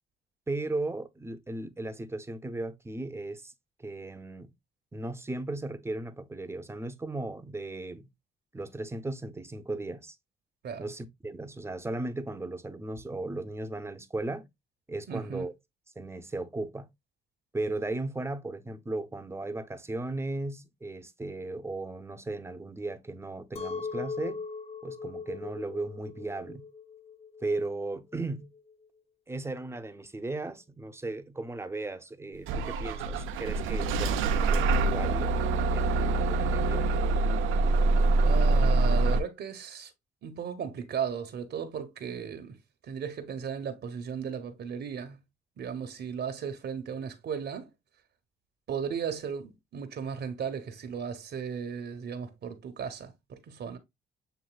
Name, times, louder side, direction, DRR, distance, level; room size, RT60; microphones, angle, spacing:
voice 1, 0.5-3.5 3.8-4.5 4.9-8.1 8.5-10.2 10.8-14.5 14.9-15.5 16.0-16.9 17.5-24.4 24.8-26.6 27.4-28.5 29.3-35.4 35.7-36.9, right 2 dB, 15° right, 0.6 m, -36 dB
voice 2, 15.1-15.5 38.2-39.9 40.2-42.6 42.9-45.2 45.6-47.7 48.7-53.8, right 7 dB, 60° right, 0.9 m, -36 dB
Chink clink, 23.6-28.7, left 4 dB, 30° left, 0.4 m, -40 dB
Bus / Engine starting, 32.5-39.2, right 2 dB, 85° right, 0.5 m, -25 dB
7.6 x 2.6 x 2.3 m
cardioid pair, 90°, 20 cm